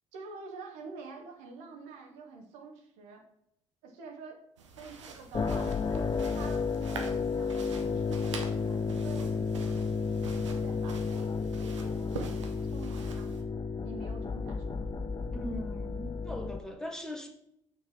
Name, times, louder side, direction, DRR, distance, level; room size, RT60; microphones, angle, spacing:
voice 1, 0.1-3.2 3.8-4.4 4.8-6.6 6.9-9.9 10.4-11.3 11.6-13.5 13.8-14.9, right 4 dB, 70° right, 2 dB, 1.5 m, -48 dB
sound 1, 4.6-13.4, right 4 dB, 85° right, 0.9 m, -45 dB
sound 2, 5.3-16.6, left 5 dB, 25° left, 0.6 m, -32 dB
voice 2, 15.3-17.3, equal, 5° left, 3 dB, 1.6 m, -40 dB
6.6 x 6.0 x 4.3 m, 0.76 s
hypercardioid pair, 55°, 15 cm